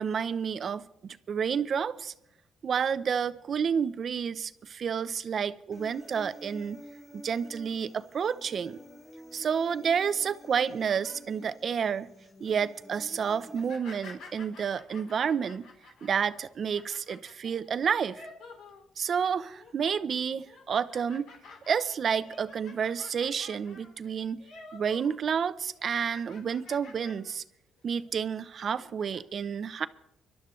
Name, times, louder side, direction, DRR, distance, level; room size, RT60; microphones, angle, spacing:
voice 1, 0.0-2.1 2.6-6.8 7.1-8.8 9.3-12.1 12.4-15.7 16.0-18.3 19.0-21.3 21.7-24.4 24.7-27.4 27.8-29.9, right 7 dB, 55° right, 0.7 m, -30 dB
Human voice, 5.7-13.7, left 1 dB, 30° left, 1.8 m, -50 dB
sound 1, 10.5-11.9 12.4-12.7 13.5-19.2 19.5-20.0 20.5-25.2 25.4-27.4 27.8-27.9 28.7-29.2, left 3 dB, 80° left, 3.5 m, -51 dB
25.5 x 12.0 x 3.2 m
cardioid pair, 90°, 0 cm